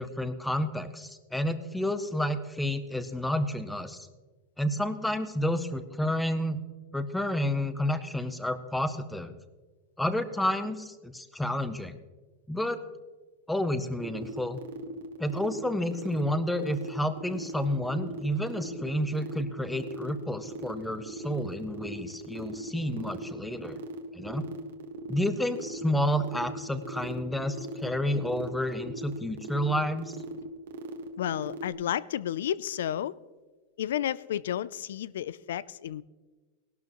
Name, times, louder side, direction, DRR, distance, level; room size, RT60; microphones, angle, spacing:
voice 1, 0.0-4.1 4.6-6.6 6.9-9.3 10.0-12.0 12.5-12.8 13.5-14.6 15.2-23.8 24.1-24.4 25.1-30.1, left 1 dB, 5° left, 12 dB, 0.6 m, -30 dB
sound 1, 14.0-31.7, right 1 dB, 85° right, 1.4 m, -41 dB
voice 2, 31.2-33.1 33.8-36.0, left 11 dB, 85° left, 20 dB, 0.4 m, -31 dB
18.0 x 12.0 x 3.0 m, 1.3 s
supercardioid pair, 165°, 0 cm